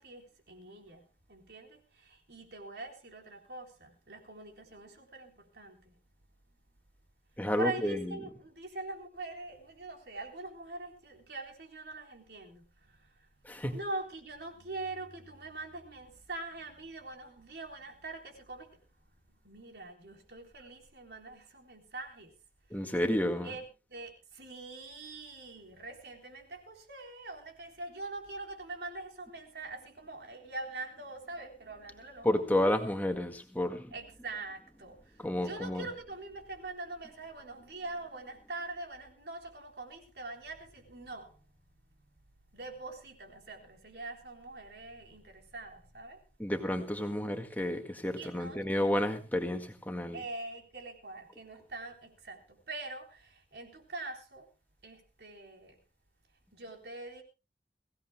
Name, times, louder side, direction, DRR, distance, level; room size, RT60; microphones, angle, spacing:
voice 1, 0.0-5.9 7.6-22.3 22.7-23.1 23.4-32.5 33.9-41.4 42.5-46.2 48.2-48.6 50.1-54.5 54.8-55.8 56.5-57.2, right 2 dB, 65° right, 3.8 m, -44 dB
voice 2, 7.4-8.0 13.5-13.7 22.7-23.5 32.2-33.9 35.2-35.9 46.4-50.2, left 1 dB, 10° left, 1.8 m, -31 dB
23.0 x 16.5 x 2.2 m
head